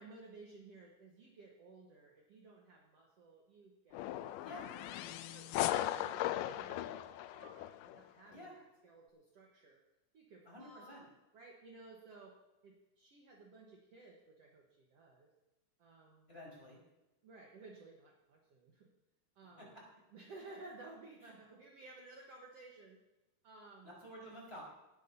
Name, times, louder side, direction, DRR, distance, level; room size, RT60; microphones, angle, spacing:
voice 1, 0.0-9.8 10.1-11.0 11.3-12.3 12.6-15.3 15.8-16.3 17.2-18.9 19.4-19.7 20.1-23.0 23.4-23.9, right 3 dB, 60° right, -1 dB, 2.0 m, -56 dB
sound 1, 3.9-8.0, left 13 dB, 85° left, 2.1 m, -38 dB
voice 2, 10.4-11.0 16.3-16.8 23.8-24.6, equal, 15° left, -4 dB, 4.9 m, -50 dB
18.5 x 13.0 x 2.8 m, 1.0 s
omnidirectional pair, 3.8 m